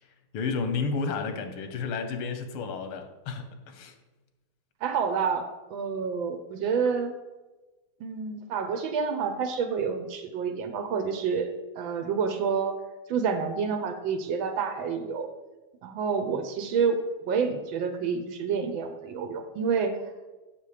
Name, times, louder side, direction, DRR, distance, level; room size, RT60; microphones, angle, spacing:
voice 1, 0.3-3.9, left 4 dB, 90° left, 8 dB, 1.8 m, -31 dB
voice 2, 4.8-7.1 8.0-11.5 11.8-12.8 13.1-15.3 15.8-17.0 17.3-19.9, right 6 dB, 75° right, 7 dB, 1.4 m, -28 dB
7.2 x 5.9 x 4.8 m, 1.2 s
omnidirectional pair, 2.3 m